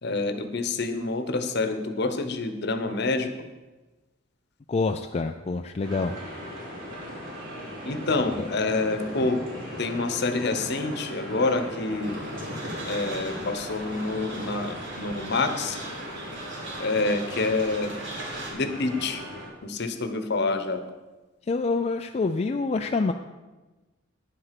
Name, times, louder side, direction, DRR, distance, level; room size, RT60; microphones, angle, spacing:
voice 1, 0.0-3.3 7.8-9.4 9.8-12.2 12.9-15.8 16.8-18.0 18.5-19.2 19.6-20.8, left 3 dB, 60° left, 9 dB, 1.0 m, -27 dB
voice 2, 4.7-6.1 21.5-23.1, left 3 dB, 35° left, 5 dB, 0.4 m, -26 dB
sound 1, 5.8-19.5, equal, 90° right, 4.4 m, -38 dB
sound 2, 12.0-18.5, right 2 dB, 65° right, 2.4 m, -40 dB
9.7 x 7.9 x 5.8 m, 1.2 s
head